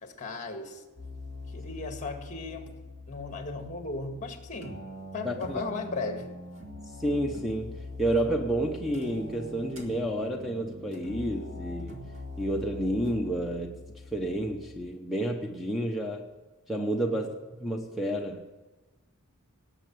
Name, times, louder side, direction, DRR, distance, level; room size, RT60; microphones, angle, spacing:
voice 1, 0.0-0.8 1.5-2.7 3.1-4.8 5.1-6.4 17.1-17.2, left 3 dB, 35° left, 2.0 m, -36 dB
sound 1, 1.0-14.9, left 2 dB, 65° right, 2.3 m, -43 dB
voice 2, 5.2-5.6 6.8-12.1 12.4-13.8 14.1-16.3 16.7-17.3 17.5-18.6, right 1 dB, ahead, 0.9 m, -30 dB
19.0 x 8.0 x 7.8 m
head